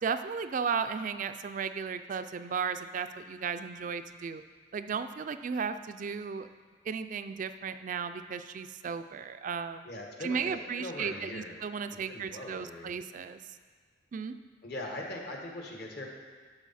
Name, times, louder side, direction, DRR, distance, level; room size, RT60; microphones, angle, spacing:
voice 1, 0.0-4.4 4.7-6.5 6.8-9.9 10.2-13.4 14.1-14.4, right 6 dB, 45° right, 10 dB, 0.3 m, -35 dB
voice 2, 9.8-11.6 12.1-12.9 14.6-16.1, left 1 dB, 55° left, 0 dB, 1.5 m, -41 dB
12.0 x 6.6 x 4.2 m, 1.5 s
head